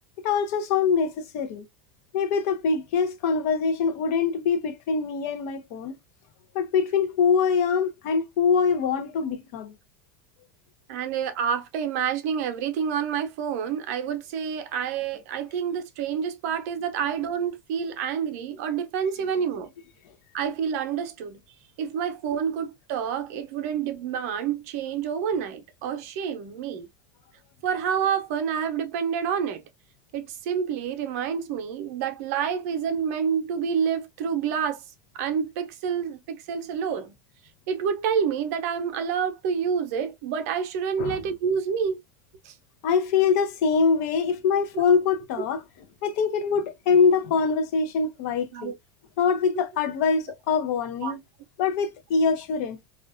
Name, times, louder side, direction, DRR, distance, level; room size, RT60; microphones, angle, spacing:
voice 1, 0.2-1.6 2.1-6.0 6.5-9.7 41.0-41.2 42.8-45.6 46.0-48.7 49.2-51.2 51.6-52.8, left 5 dB, 60° left, 0.6 m, -24 dB
voice 2, 10.9-19.7 20.3-21.4 21.8-26.9 27.6-29.6 30.1-34.8 35.2-37.1 37.7-42.0 42.4-42.5 44.7-44.8 48.5-48.7 51.0-51.1, right 7 dB, 65° right, 0.6 m, -28 dB
2.4 x 2.2 x 2.3 m
supercardioid pair, 150°, 9 cm